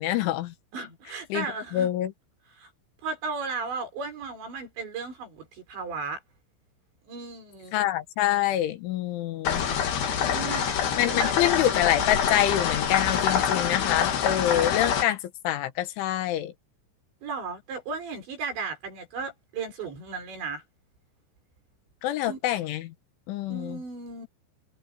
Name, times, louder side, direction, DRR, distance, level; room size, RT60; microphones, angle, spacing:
voice 1, 0.0-0.5 1.3-1.5 1.7-2.1 7.7-9.6 11.0-15.2 15.4-16.5 22.0-22.9 23.3-23.8, left 12 dB, 80° left, 3.7 m, -26 dB
voice 2, 0.7-1.9 2.6-2.7 3.0-6.2 7.1-7.8 10.2-11.4 17.2-20.6 22.3-22.4 23.5-24.3, right 4 dB, 65° right, 8.4 m, -35 dB
sound 1, 9.5-15.0, left 8 dB, 60° left, 4.3 m, -26 dB
omnidirectional pair, 5.6 m